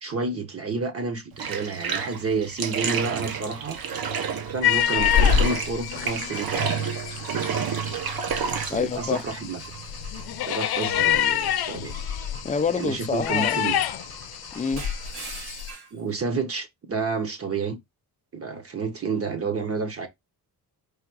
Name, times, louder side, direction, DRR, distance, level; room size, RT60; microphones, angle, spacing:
voice 1, 0.0-3.8 4.3-6.7 8.5-9.6 10.5-11.9 12.7-13.8 15.9-17.8 18.3-20.1, right 4 dB, 35° right, 0.8 m, -30 dB
Bathtub (filling or washing), 1.3-13.0, right 6 dB, 65° right, 0.9 m, -31 dB
sound 1, 4.6-15.7, left 10 dB, 70° left, 0.6 m, -27 dB
voice 2, 8.7-9.2 12.4-13.6 14.5-14.8, left 5 dB, 20° left, 0.3 m, -26 dB
Car / Engine / Glass, 8.9-11.1 11.8-16.0, right 4 dB, 85° right, 1.9 m, -44 dB
4.8 x 2.4 x 4.5 m
wide cardioid pair, 140°, 39 cm